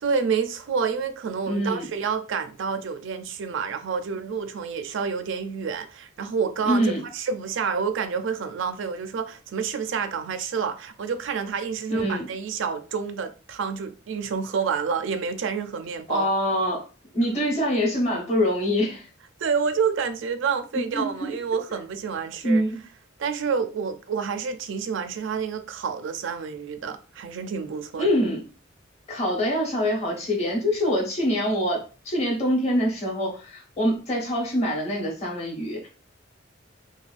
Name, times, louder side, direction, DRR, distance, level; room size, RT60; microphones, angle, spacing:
voice 1, 0.0-16.3 19.4-22.6 23.2-28.1, right 6 dB, 70° right, 0.4 m, -28 dB
voice 2, 1.4-1.9 6.6-7.0 11.9-12.3 16.1-16.8 17.1-19.1 20.7-21.3 22.4-22.8 28.0-28.4 29.1-35.9, equal, 35° left, 1.1 m, -25 dB
3.3 x 2.2 x 2.4 m
head